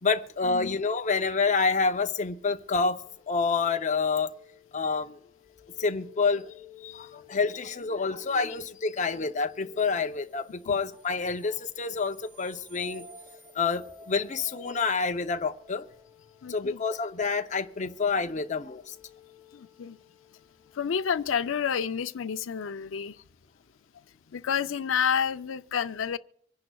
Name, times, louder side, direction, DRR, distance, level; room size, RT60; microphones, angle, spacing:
voice 1, 0.0-3.0 3.3-4.3 4.7-5.2 5.8-6.5 6.8-13.0 13.5-15.8 16.5-19.0, left 4 dB, 40° left, 0.7 m, -28 dB
sound 1, 3.0-21.5, left 5 dB, 25° right, 2.0 m, -53 dB
voice 2, 16.4-16.8 19.5-20.0 20.7-23.2 24.3-26.2, left 7 dB, 75° left, 0.5 m, -29 dB
25.5 x 10.5 x 2.3 m
head